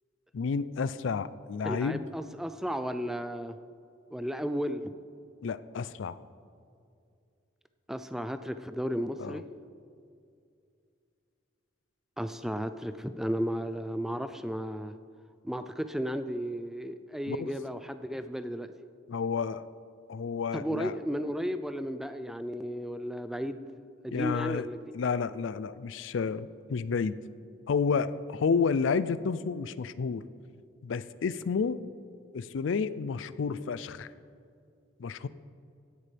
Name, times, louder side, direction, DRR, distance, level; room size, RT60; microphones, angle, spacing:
voice 1, 0.3-2.0 5.4-6.2 9.2-9.4 17.3-17.5 19.1-19.6 20.1-20.9 24.1-24.7 24.9-27.2 27.7-30.2 30.8-31.8 32.3-34.1 35.0-35.3, left 5 dB, 80° left, 16 dB, 0.4 m, -30 dB
voice 2, 1.6-3.6 4.1-4.8 7.9-9.5 12.2-14.9 15.4-18.7 20.5-23.7 24.0-24.8, equal, ahead, 10 dB, 0.3 m, -34 dB
16.5 x 11.0 x 3.4 m, 2.4 s
head